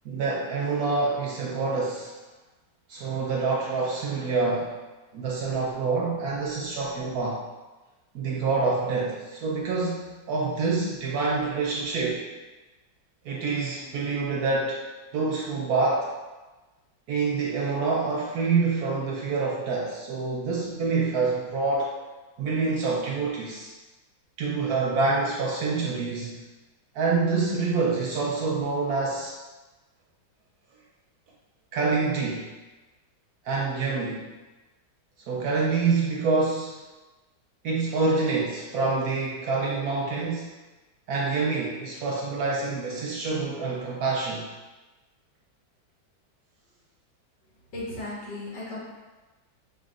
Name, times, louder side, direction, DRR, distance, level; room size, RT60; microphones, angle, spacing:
voice 1, 0.0-2.1 2.9-4.7 5.1-7.4 8.1-12.2 13.2-14.8 15.1-16.1 17.1-21.9 22.4-23.7 24.4-26.4 26.9-29.4 31.7-32.5 33.5-34.3 35.3-36.8 37.6-40.5 41.1-44.5, right 4 dB, 70° right, -3 dB, 1.0 m, -26 dB
voice 2, 47.7-48.8, left 2 dB, 80° left, -7 dB, 1.9 m, -35 dB
5.7 x 2.5 x 2.4 m, 1.2 s
omnidirectional pair, 1.9 m